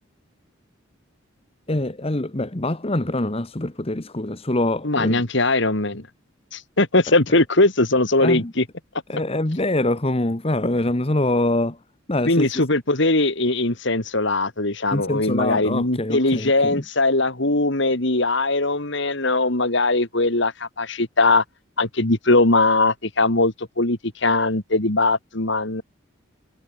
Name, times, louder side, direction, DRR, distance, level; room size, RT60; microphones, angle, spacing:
voice 1, 1.7-5.2 7.3-7.4 8.2-8.5 9.1-11.8 12.1-12.5 14.9-16.8, left 1 dB, 30° left, 1.3 m, -24 dB
voice 2, 4.8-6.1 6.5-8.6 12.3-21.4 21.8-25.8, left 2 dB, 60° left, 2.6 m, -20 dB
head